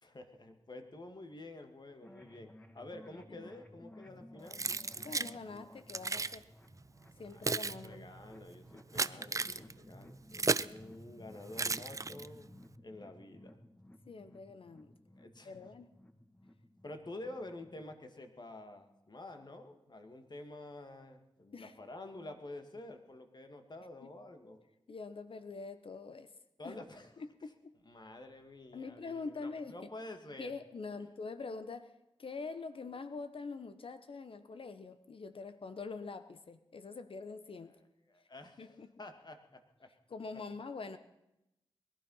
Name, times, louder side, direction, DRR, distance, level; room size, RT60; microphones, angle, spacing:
voice 1, 0.0-2.5 2.7-5.1 7.2-13.6 15.2-15.6 16.8-24.6 26.6-27.1 27.8-30.5 31.0-31.1 37.7-37.8 38.1-38.7 39.0-39.9, left 2 dB, 50° left, 6 dB, 2.2 m, -49 dB
sound 1, 2.0-17.9, left 1 dB, 15° left, 1.9 m, -57 dB
Keys jangling, 4.5-5.3 5.9-6.4 7.1-10.8 11.5-12.5, right 3 dB, 35° right, 0.5 m, -35 dB
voice 2, 4.9-6.5 7.2-8.1 9.5-9.8 14.1-14.9 15.4-15.9 21.5-21.7 24.0-24.1 24.9-26.3 26.6-26.7 27.2-27.7 28.7-29.9 30.4-31.9 32.2-37.7 38.6-38.9 40.1-41.0, left 4 dB, 65° left, 11 dB, 1.1 m, -44 dB
20.5 x 12.5 x 5.7 m, 0.89 s
cardioid pair, 45°, 10 cm